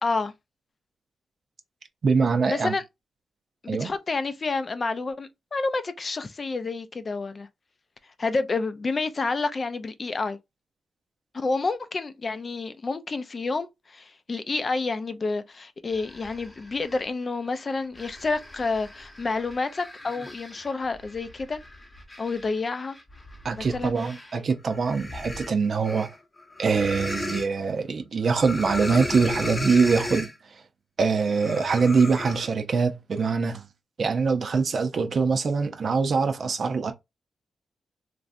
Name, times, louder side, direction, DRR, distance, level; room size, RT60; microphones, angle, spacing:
voice 1, 0.0-0.3 2.5-2.8 3.6-7.5 8.2-10.4 11.3-21.6 22.2-23.0 23.6-23.9, left 3 dB, 40° left, 0.4 m, -29 dB
voice 2, 2.0-2.7 3.7-3.9 23.4-26.1 26.6-30.3 31.0-33.7 34.0-36.9, right 5 dB, 60° right, 0.5 m, -23 dB
sound 1, 15.9-17.1 17.6-24.4 24.7-27.5 28.2-30.3 31.2-32.5, left 1 dB, 25° left, 0.9 m, -36 dB
3.1 x 2.5 x 2.5 m
cardioid pair, 95°, 0 cm